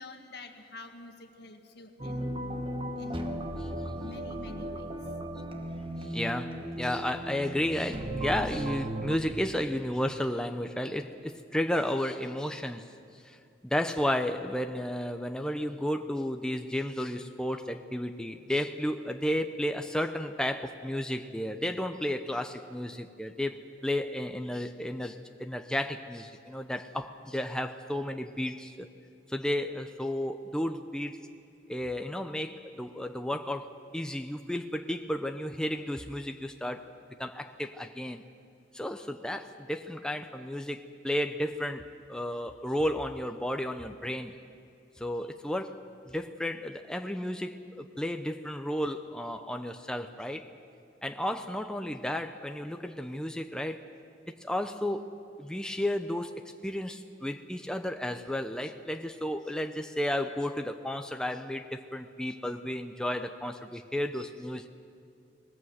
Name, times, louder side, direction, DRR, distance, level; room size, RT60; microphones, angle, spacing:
voice 1, 0.0-2.2 3.0-3.2 3.6-4.9, left 2 dB, 65° left, 6 dB, 1.7 m, -47 dB
sound 1, 2.0-9.2, right 1 dB, 30° right, 1.3 m, -36 dB
voice 2, 6.0-13.4 13.6-28.9 29.3-31.2 31.7-36.9 37.2-38.2 38.7-44.4 45.0-50.5 51.0-53.9 54.3-55.1 55.4-56.3 56.6-64.7, left 1 dB, 5° left, 6 dB, 0.6 m, -33 dB
20.0 x 20.0 x 7.9 m, 2.5 s
head